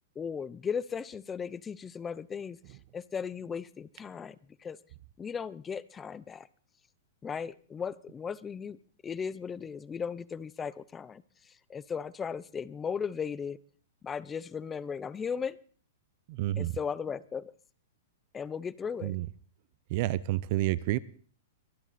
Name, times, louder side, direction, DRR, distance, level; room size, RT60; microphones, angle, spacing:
voice 1, 0.2-2.6 2.9-4.8 5.2-6.5 7.2-8.8 9.0-11.2 11.7-13.6 14.0-15.6 16.6-17.5 18.3-19.1, left 6 dB, 10° left, 17 dB, 0.5 m, -36 dB
voice 2, 16.3-16.7 19.0-19.3 19.9-21.0, right 16 dB, 40° right, 20 dB, 0.6 m, -29 dB
23.5 x 10.0 x 4.2 m, 0.44 s
supercardioid pair, 165°, 0 cm